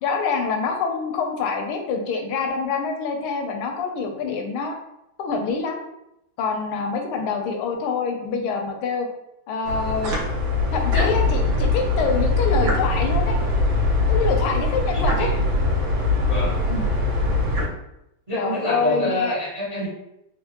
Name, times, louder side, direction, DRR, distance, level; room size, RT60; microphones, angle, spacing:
voice 1, 0.0-4.7 5.2-5.8 6.4-9.1 9.5-10.1 10.7-13.4 14.1-15.3 16.7-16.9 18.3-19.4, left 5 dB, 80° left, 3 dB, 1.4 m, -25 dB
sound 1, 9.6-17.6, left 2 dB, 75° right, 1.7 m, -22 dB
voice 2, 14.9-15.3 16.2-16.6 18.3-19.9, equal, 50° right, -8 dB, 0.3 m, -27 dB
4.2 x 2.0 x 2.8 m, 0.84 s
omnidirectional pair, 2.4 m